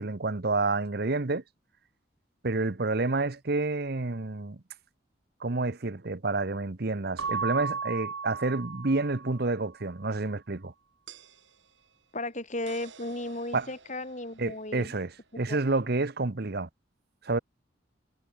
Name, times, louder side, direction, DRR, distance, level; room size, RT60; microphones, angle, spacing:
voice 1, 0.0-1.4 2.4-4.6 5.4-10.7 13.5-13.7 14.4-16.7 17.2-17.4, right 3 dB, 55° right, 1.0 m, -29 dB
Keyboard (musical) / Bell, 7.2-9.6, right 5 dB, 90° right, 1.3 m, -34 dB
sound 1, 11.1-15.5, right 6 dB, 75° right, 8.0 m, -53 dB
voice 2, 12.1-14.9 15.5-15.6, left 2 dB, 40° left, 5.9 m, -35 dB
head